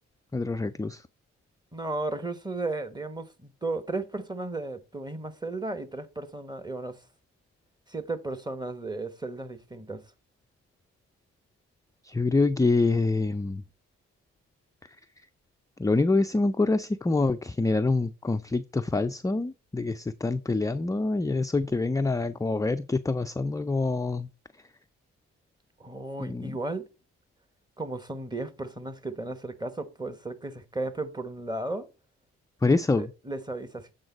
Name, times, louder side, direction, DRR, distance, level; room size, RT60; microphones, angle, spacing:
voice 1, 0.3-1.0 12.0-13.6 15.8-24.3 26.2-26.6 32.6-33.1, left 3 dB, 10° left, 0.4 m, -26 dB
voice 2, 1.7-7.0 7.9-10.0 25.8-26.9 27.8-31.9 32.7-33.9, right 2 dB, 10° right, 1.3 m, -35 dB
7.8 x 3.8 x 5.3 m
hypercardioid pair, 40°, 35 cm